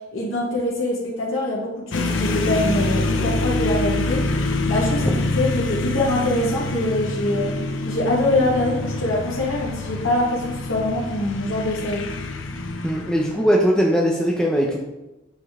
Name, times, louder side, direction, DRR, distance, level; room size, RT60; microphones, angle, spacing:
voice 1, 0.1-4.2 4.7-7.5 7.8-12.1, left 1 dB, 85° left, -5 dB, 1.6 m, -24 dB
sound 1, 1.9-13.6, left 2 dB, 70° left, 0.7 m, -26 dB
voice 2, 12.8-14.8, equal, 5° left, -2 dB, 0.7 m, -20 dB
8.2 x 5.2 x 3.7 m, 1.0 s
head